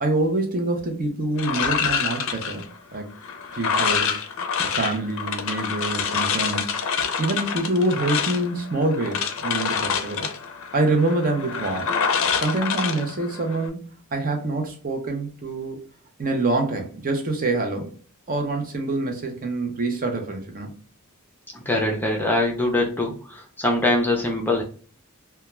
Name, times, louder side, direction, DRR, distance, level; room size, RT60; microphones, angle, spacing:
voice 1, 0.0-3.2 3.5-4.2 4.6-6.8 7.2-10.3 10.7-11.9 12.4-15.8 16.2-17.9 18.3-20.8, right 2 dB, 40° right, 0.6 m, -26 dB
sound 1, 1.4-13.7, left 6 dB, 60° left, 0.4 m, -27 dB
voice 2, 21.5-24.6, left 1 dB, 10° left, 0.5 m, -23 dB
2.3 x 2.3 x 3.0 m
head